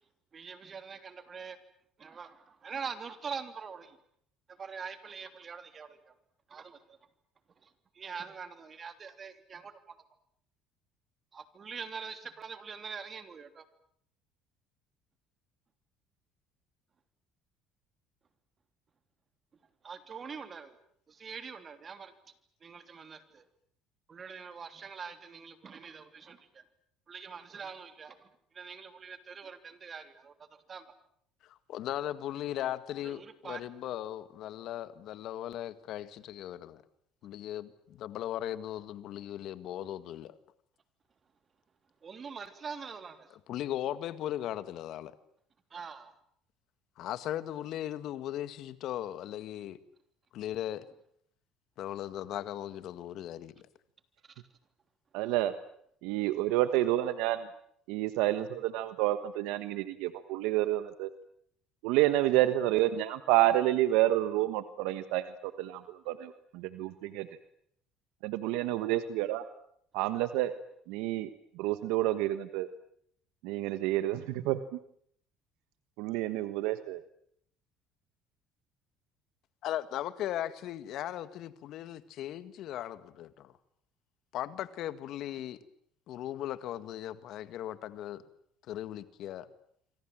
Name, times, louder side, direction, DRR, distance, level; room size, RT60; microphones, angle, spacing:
voice 1, 0.3-1.6 2.0-4.0 4.5-6.1 6.5-7.0 7.6-9.9 11.3-13.6 19.8-20.8 21.1-22.1 22.6-23.4 24.1-26.6 27.1-28.3 28.5-30.8 33.0-33.6 42.0-43.4 45.7-46.1 54.3-54.4, right 6 dB, 35° right, 9 dB, 3.2 m, -44 dB
voice 2, 31.5-36.8 37.2-40.4 43.5-45.1 47.0-49.8 50.3-50.9 51.8-53.5 79.6-83.5 84.3-85.6 86.1-88.2 88.7-89.5, left 12 dB, 65° left, 13 dB, 1.9 m, -38 dB
voice 3, 55.1-55.5 56.0-57.5 57.9-61.1 61.8-65.2 65.6-67.3 68.2-69.4 69.9-70.5 70.9-71.3 71.6-72.7 73.4-74.6 76.0-77.0, right 15 dB, 85° right, 11 dB, 1.3 m, -29 dB
27.5 x 24.5 x 7.6 m, 0.68 s
cardioid pair, 105°, 0 cm